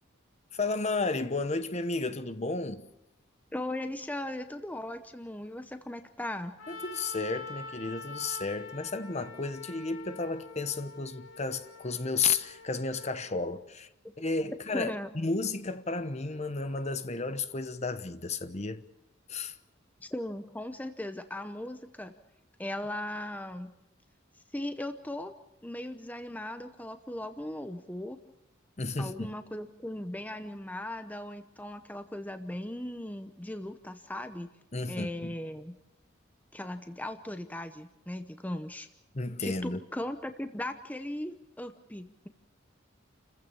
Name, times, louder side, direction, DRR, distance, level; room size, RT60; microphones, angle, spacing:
voice 1, 0.5-2.9 6.7-13.9 14.2-18.8 19.3-19.6 28.8-29.4 34.7-35.3 39.1-39.8, left 3 dB, 35° left, 0.9 m, -32 dB
voice 2, 3.5-6.6 14.7-15.1 20.0-22.1 22.6-23.7 24.5-25.3 25.6-28.2 29.0-34.5 34.9-35.8 36.5-38.9 39.4-42.3, left 1 dB, 10° left, 0.8 m, -38 dB
Trumpet, 6.6-13.2, left 3 dB, 80° left, 2.6 m, -45 dB
29.0 x 15.0 x 7.1 m
head